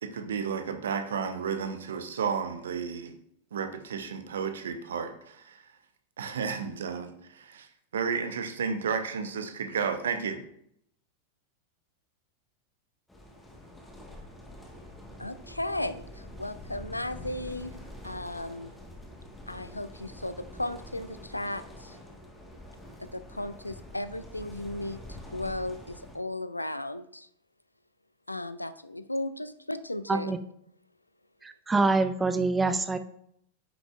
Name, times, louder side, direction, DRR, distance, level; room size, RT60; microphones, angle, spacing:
voice 1, 0.0-3.1 3.5-5.6 6.2-7.7 7.9-10.4, right 6 dB, 65° right, 8 dB, 0.8 m, -32 dB
sound 1, 13.1-26.2, left 1 dB, 5° left, 1.4 m, -46 dB
voice 2, 15.2-17.7 18.0-18.7 19.5-22.0 23.0-27.3 28.3-30.3, left 1 dB, 85° left, 13 dB, 0.4 m, -35 dB
voice 3, 31.4-33.0, right 3 dB, 10° right, 10 dB, 0.5 m, -25 dB
9.1 x 6.2 x 2.4 m, 0.72 s
figure-of-eight pair, 90°, 0 cm